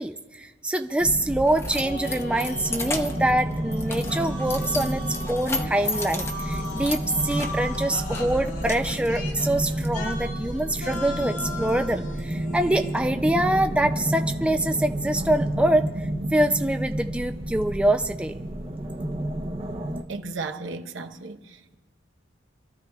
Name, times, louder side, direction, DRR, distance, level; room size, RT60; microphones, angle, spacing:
voice 1, 0.0-15.9 16.3-18.4, right 1 dB, 5° right, 0.4 m, -25 dB
Keys jangling, 0.8-9.9, left 3 dB, 15° left, 0.7 m, -36 dB
sound 1, 1.0-20.0, right 1 dB, 30° right, 0.8 m, -31 dB
sound 2, 1.7-12.9, equal, 75° left, 2.2 m, -37 dB
voice 2, 20.1-21.8, right 3 dB, 75° right, 0.9 m, -35 dB
28.0 x 13.5 x 2.3 m
head